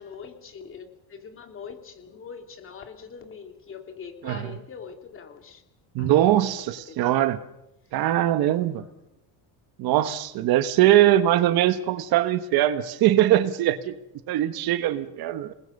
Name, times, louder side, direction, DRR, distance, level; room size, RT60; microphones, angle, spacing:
voice 1, 0.0-5.6 6.0-6.4 6.8-7.3 7.8-8.0 8.5-8.9, left 6 dB, 30° left, 6 dB, 2.6 m, -43 dB
voice 2, 5.9-7.4 7.9-8.8 9.8-13.9 14.3-15.5, right 13 dB, 60° right, 11 dB, 1.3 m, -21 dB
28.5 x 20.0 x 6.6 m, 0.90 s
cardioid pair, 170°, 42 cm